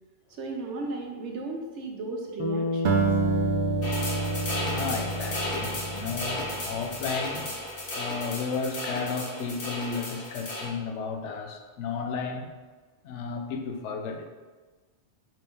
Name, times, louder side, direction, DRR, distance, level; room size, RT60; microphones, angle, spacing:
voice 1, 0.4-3.1, right 2 dB, 80° right, 1 dB, 1.1 m, -35 dB
Bass guitar, 2.4-6.8, left 2 dB, 50° left, 0.3 m, -32 dB
Acoustic guitar, 2.8-7.3, right 5 dB, 65° right, 0.8 m, -30 dB
sound 1, 3.8-10.7, left 1 dB, 70° left, 1.4 m, -34 dB
voice 2, 4.6-7.5 7.9-12.5 13.0-14.3, left 5 dB, 85° left, 5 dB, 0.9 m, -33 dB
5.2 x 2.8 x 3.5 m, 1.3 s
omnidirectional pair, 1.2 m